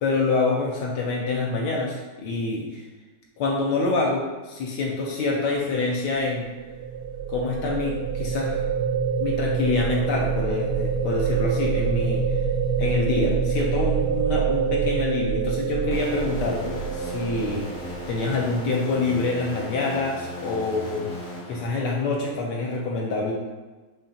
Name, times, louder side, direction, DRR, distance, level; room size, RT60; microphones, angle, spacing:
voice 1, 0.0-2.8 3.4-6.5 7.3-8.6 9.2-12.2 12.8-17.6 18.1-21.1 21.5-23.3, left 3 dB, 75° left, -2 dB, 1.1 m, -26 dB
sound 1, 6.3-18.5, right 6 dB, 65° right, 1.0 m, -26 dB
sound 2, 15.9-22.4, left 1 dB, 35° left, 0.8 m, -37 dB
5.6 x 2.4 x 2.6 m, 1.2 s
omnidirectional pair, 2.0 m